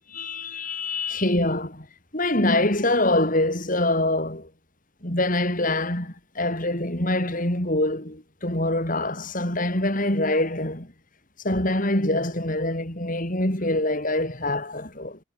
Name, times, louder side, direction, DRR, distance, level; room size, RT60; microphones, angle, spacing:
voice 1, 0.1-1.9 2.1-4.5 5.0-10.9 11.4-15.2, left 1 dB, 40° left, 4.5 m, -25 dB
head